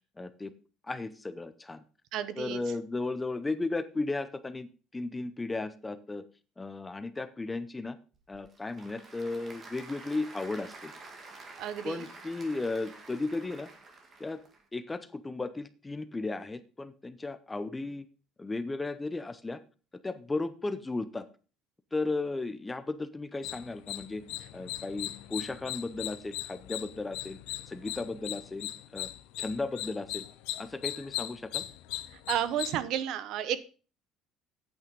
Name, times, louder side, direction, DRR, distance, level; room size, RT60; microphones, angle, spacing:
voice 1, 0.2-0.5 0.9-1.8 2.4-6.2 6.6-8.0 8.3-10.9 11.8-13.7 14.2-14.4 14.7-18.0 18.4-19.6 20.0-21.2 21.9-24.2 24.5-27.4 27.7-29.1 29.4-30.2 30.6-31.6, left 3 dB, 10° left, 13 dB, 0.6 m, -35 dB
voice 2, 2.1-2.6 11.6-12.0 32.3-33.6, right 10 dB, 60° right, 15 dB, 0.9 m, -32 dB
Applause / Crowd, 8.1-14.6, right 3 dB, 25° right, 2.0 m, -49 dB
sound 1, 23.4-32.7, left 16 dB, 85° left, 0.7 m, -39 dB
9.0 x 8.6 x 5.2 m, 0.36 s
cardioid pair, 165°, 0 cm